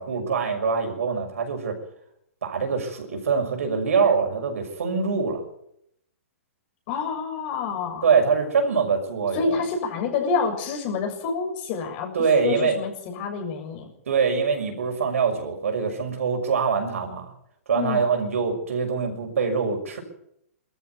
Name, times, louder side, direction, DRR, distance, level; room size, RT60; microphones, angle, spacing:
voice 1, 0.0-1.8 2.4-5.4 8.0-9.6 12.1-12.8 14.1-17.3 17.7-20.0, right 5 dB, 75° right, 4 dB, 6.2 m, -24 dB
voice 2, 6.9-8.1 9.3-13.9 17.7-18.1, left 5 dB, 45° left, 3 dB, 7.1 m, -28 dB
21.5 x 14.0 x 9.5 m, 0.75 s
hypercardioid pair, 125°, 8 cm